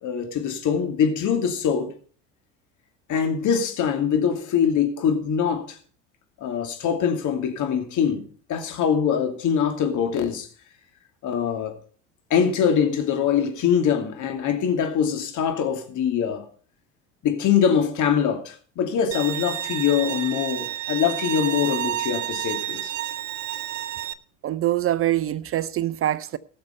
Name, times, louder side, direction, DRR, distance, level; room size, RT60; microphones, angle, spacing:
voice 1, 0.0-1.9 3.1-5.8 6.4-8.2 8.5-10.5 11.2-11.8 12.3-16.5 17.2-22.9, left 7 dB, 50° left, 2.7 m, -23 dB
Bowed string instrument, 19.1-24.1, right 13 dB, 70° right, 0.9 m, -30 dB
voice 2, 24.4-26.4, right 13 dB, 35° right, 0.5 m, -24 dB
17.0 x 6.7 x 5.3 m
hypercardioid pair, 65°, 38 cm